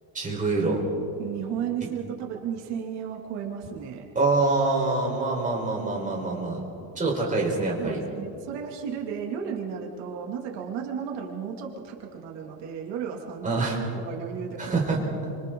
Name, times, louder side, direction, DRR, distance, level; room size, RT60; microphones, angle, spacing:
voice 1, 0.1-0.8 4.1-6.6 6.9-8.0 13.4-13.8 14.6-15.0, right 3 dB, 15° right, -2 dB, 4.2 m, -25 dB
voice 2, 1.2-4.1 7.8-13.5 14.0-14.7, right 7 dB, 60° right, 0 dB, 2.6 m, -34 dB
30.0 x 25.5 x 3.9 m, 2.6 s
cardioid pair, 165°, 47 cm